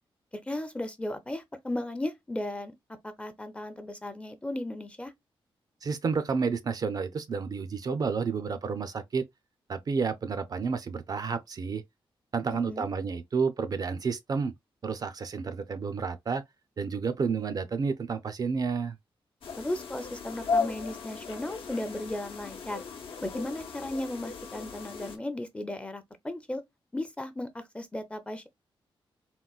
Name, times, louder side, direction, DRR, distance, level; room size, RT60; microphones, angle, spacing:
voice 1, 0.3-2.7 3.0-5.1 12.5-12.9 19.6-22.8 23.2-26.6 26.9-28.5, left 1 dB, 10° left, 0.5 m, -35 dB
voice 2, 5.8-9.3 9.7-11.8 12.3-14.5 14.8-16.4 16.8-19.0, right 5 dB, 45° right, 0.4 m, -30 dB
sound 1, 19.4-25.2, left 4 dB, 70° left, 0.8 m, -35 dB
3.7 x 2.1 x 2.3 m
wide cardioid pair, 125°, 9 cm